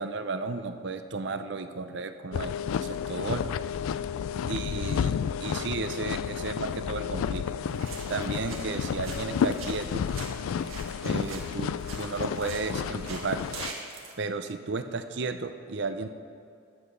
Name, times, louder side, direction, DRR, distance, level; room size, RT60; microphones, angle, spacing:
voice 1, 0.0-3.4 4.5-7.4 8.1-10.1 11.0-13.4 14.2-16.1, right 3 dB, 60° right, 9 dB, 0.6 m, -34 dB
sound 1, 2.3-13.7, left 7 dB, 85° left, 0.3 m, -31 dB
sound 2, 7.6-14.1, right 4 dB, 90° right, 1.7 m, -44 dB
11.5 x 8.0 x 5.4 m, 2.4 s
head